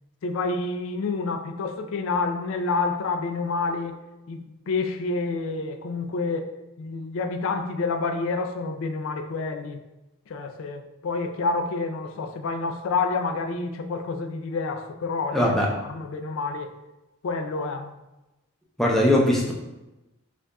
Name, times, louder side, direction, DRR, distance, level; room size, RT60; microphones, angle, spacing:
voice 1, 0.2-4.0 4.3-9.8 10.3-15.5 15.9-16.7 17.2-18.0, left 3 dB, 70° left, 0.4 m, -28 dB
voice 2, 15.3-15.7 18.8-19.5, left 1 dB, ahead, 0.5 m, -20 dB
6.6 x 2.4 x 2.3 m
head